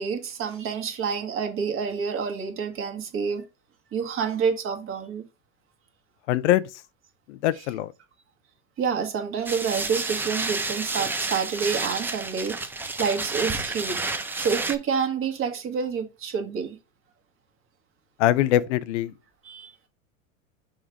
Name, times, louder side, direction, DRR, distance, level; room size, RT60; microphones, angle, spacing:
voice 1, 0.0-3.4 3.9-5.2 7.6-7.7 8.8-14.0 14.4-16.8 19.4-19.7, right 6 dB, 30° right, 1.6 m, -28 dB
voice 2, 6.3-6.6 7.3-7.9 18.2-19.1, left 13 dB, 60° left, 0.5 m, -22 dB
sound 1, 9.5-14.8, right 3 dB, 5° right, 0.4 m, -30 dB
6.3 x 3.3 x 5.0 m
hypercardioid pair, 110°, 40 cm